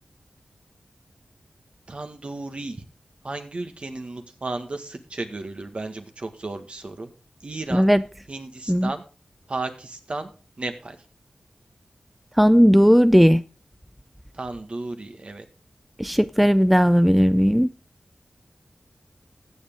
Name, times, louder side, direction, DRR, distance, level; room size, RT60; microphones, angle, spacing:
voice 1, 1.9-2.8 3.2-7.1 7.4-7.9 8.3-9.1 9.5-10.3 10.6-11.0 14.3-15.5, right 2 dB, 55° right, 1.7 m, -34 dB
voice 2, 7.7-8.0 8.7-8.9 12.4-13.4 16.0-17.7, equal, ahead, 0.4 m, -16 dB
15.0 x 7.3 x 3.8 m
cardioid pair, 40°, 2 cm